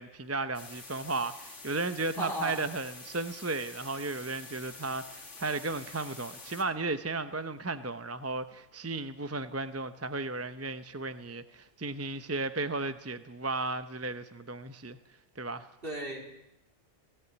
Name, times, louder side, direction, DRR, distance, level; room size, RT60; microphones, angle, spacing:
voice 1, 0.0-15.0 15.4-15.7, right 3 dB, 15° right, 11 dB, 0.6 m, -34 dB
sound 1, 0.5-6.6, left 3 dB, 90° left, 2.7 m, -47 dB
voice 2, 2.2-2.6 15.8-16.5, right 1 dB, 50° right, 1 dB, 4.1 m, -36 dB
18.0 x 17.0 x 9.5 m, 0.89 s
omnidirectional pair, 1.2 m